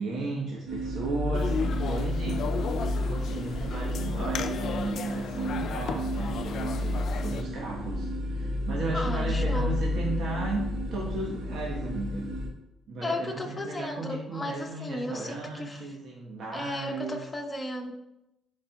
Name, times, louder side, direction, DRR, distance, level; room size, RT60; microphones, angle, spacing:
voice 1, 0.0-2.5 2.9-12.3 12.9-17.2, right 3 dB, 70° right, -3 dB, 1.2 m, -35 dB
sound 1, 0.7-12.5, left 1 dB, 90° right, 1.4 m, -31 dB
sound 2, 1.3-7.4, left 6 dB, 70° left, 0.5 m, -35 dB
voice 2, 8.9-9.8 13.0-15.8 16.5-17.9, left 1 dB, 20° left, 2 dB, 1.2 m, -34 dB
11.5 x 4.8 x 2.4 m, 0.91 s
cardioid pair, 90°, 0 cm